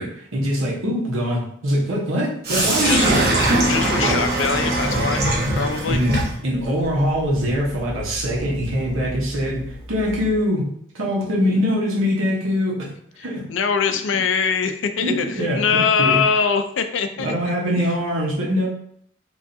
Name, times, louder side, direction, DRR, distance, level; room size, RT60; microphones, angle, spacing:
voice 1, 0.0-3.3 5.9-10.7 10.9-12.9 13.2-13.4 15.0-16.2 17.2-18.7, equal, 85° right, -4 dB, 1.0 m, -23 dB
Sink (filling or washing), 2.4-10.4, right 1 dB, 50° right, 1.1 m, -23 dB
voice 2, 3.7-5.3 5.6-6.0 13.5-17.8, left 6 dB, 65° left, 8 dB, 0.4 m, -22 dB
4.6 x 2.5 x 2.7 m, 0.65 s
head